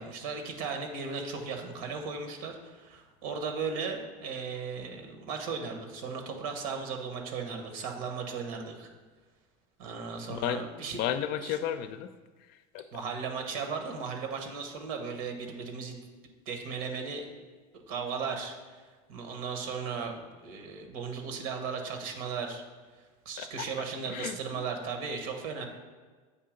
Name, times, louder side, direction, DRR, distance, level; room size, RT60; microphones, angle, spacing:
voice 1, 0.0-8.9 9.8-11.0 11.4-11.6 12.9-16.0 16.5-17.3 17.9-18.8 19.1-22.6 23.2-25.6, right 5 dB, 75° right, 4 dB, 1.2 m, -36 dB
voice 2, 10.3-10.7 11.0-12.1 12.5-12.9 23.4-24.7, left 10 dB, 60° left, 11 dB, 0.5 m, -34 dB
8.3 x 2.8 x 5.1 m, 1.4 s
supercardioid pair, 100°, 18 cm